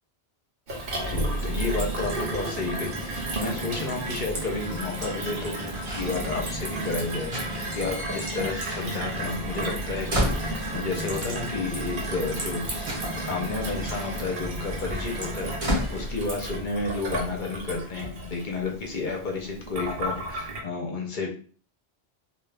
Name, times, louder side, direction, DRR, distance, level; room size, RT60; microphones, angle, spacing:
Gurgling / Water tap faucet / Sink (filling or washing), 0.7-20.6, right 1 dB, 55° right, 0.9 m, -32 dB
voice 1, 1.0-7.5 7.7-21.3, left 3 dB, 50° left, 1 dB, 0.8 m, -32 dB
sound 1, 5.9-6.9 7.2-9.2 9.5-11.1 12.0-12.1 12.3-16.8 17.1-17.6, equal, 35° right, 1.0 m, -33 dB
2.4 x 2.4 x 3.3 m, 0.41 s
omnidirectional pair, 1.1 m